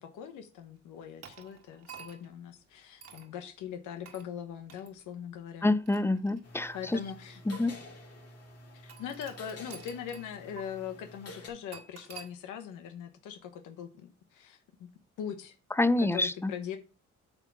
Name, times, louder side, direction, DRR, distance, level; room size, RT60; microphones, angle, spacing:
voice 1, 0.0-5.7 6.7-7.4 8.8-14.6 15.2-15.5 16.0-16.8, left 9 dB, 90° left, 1.0 m, -41 dB
sound 1, 1.2-2.4 3.0-3.3 4.1-4.3 4.7-4.9 5.6-6.8 7.5-7.6 8.9-10.3 10.6-10.7 11.7-12.3, right 7 dB, 55° right, 1.7 m, -49 dB
voice 2, 5.6-7.0 7.5-7.7 15.8-16.5, left 2 dB, 10° left, 0.4 m, -27 dB
sound 2, 6.4-11.5, left 1 dB, 55° left, 2.5 m, -49 dB
9.0 x 3.6 x 6.1 m
cardioid pair, 90°, 30 cm